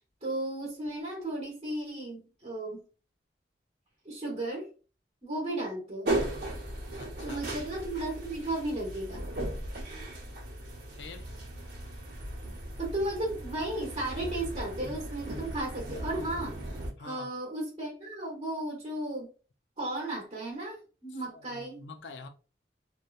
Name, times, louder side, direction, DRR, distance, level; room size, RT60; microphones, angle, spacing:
voice 1, 0.2-2.8 4.0-4.7 5.2-6.1 7.2-9.3 12.8-16.6 17.0-19.3 19.8-21.8, right 1 dB, 35° right, 0.9 m, -34 dB
sound 1, 6.0-16.9, right 1 dB, 85° right, 0.9 m, -37 dB
voice 2, 7.0-7.7 10.9-11.3 16.9-17.3 21.1-22.3, left 3 dB, 85° left, 0.4 m, -47 dB
2.7 x 2.2 x 2.3 m
head